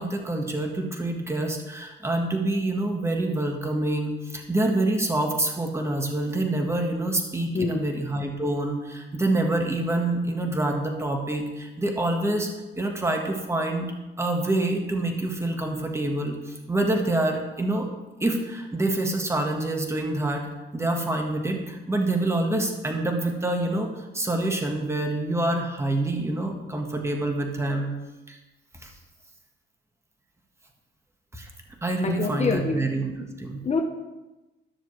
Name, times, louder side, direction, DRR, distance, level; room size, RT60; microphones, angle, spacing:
voice 1, 0.0-12.5 12.7-13.9 14.2-17.9 18.2-27.9 28.3-28.4 28.8-28.9 31.3-31.5 31.8-33.6, right 2 dB, 15° right, 2 dB, 1.5 m, -26 dB
voice 2, 7.5-7.9 32.0-32.9 33.6-33.8, left 4 dB, 35° left, 2 dB, 0.9 m, -26 dB
13.0 x 6.6 x 3.2 m, 1.1 s
cardioid pair, 90°, 20 cm